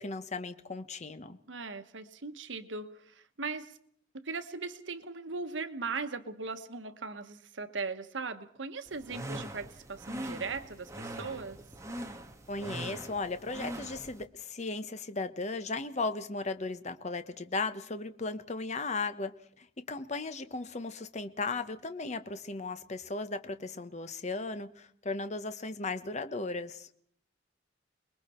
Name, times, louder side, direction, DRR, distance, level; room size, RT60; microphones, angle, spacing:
voice 1, 0.0-1.4 12.5-26.9, left 3 dB, 40° left, 10 dB, 0.9 m, -36 dB
voice 2, 1.5-2.9 3.4-3.7 4.1-11.6, right 4 dB, 90° right, 10 dB, 1.2 m, -38 dB
sound 1, 8.9-14.2, right 1 dB, 15° right, 1.5 m, -42 dB
29.5 x 21.0 x 4.4 m, 0.65 s
head